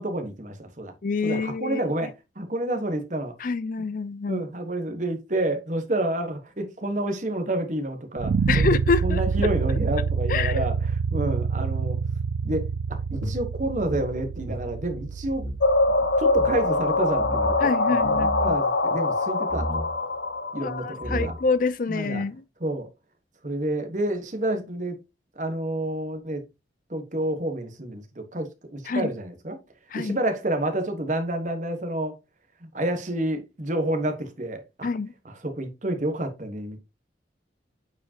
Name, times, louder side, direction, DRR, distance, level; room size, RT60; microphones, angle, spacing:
voice 1, 0.0-0.9 1.2-3.3 4.2-8.6 9.0-12.0 12.4-12.7 13.1-15.4 16.2-19.7 20.5-21.3 21.9-22.2 22.6-22.9 23.4-25.0 25.3-26.4 26.9-29.6 29.9-32.1 32.6-34.9 35.2-36.8, right 1 dB, 40° right, 1.3 m, -29 dB
voice 2, 1.0-1.8 3.4-4.4 8.5-9.5 10.3-10.7 17.6-18.6 20.6-22.4 28.9-29.1 29.9-30.2 34.8-35.1, left 4 dB, 45° left, 0.4 m, -27 dB
sound 1, 8.2-17.2, right 5 dB, 75° right, 0.4 m, -27 dB
sound 2, 13.2-15.6 15.9-16.0 16.3-16.6 17.2-17.6 18.0-18.5 19.5-19.9 20.7-20.8 21.0-21.6, equal, 90° right, 2.3 m, -33 dB
sound 3, 15.6-21.3, left 2 dB, 70° left, 1.0 m, -23 dB
8.3 x 4.8 x 2.8 m
head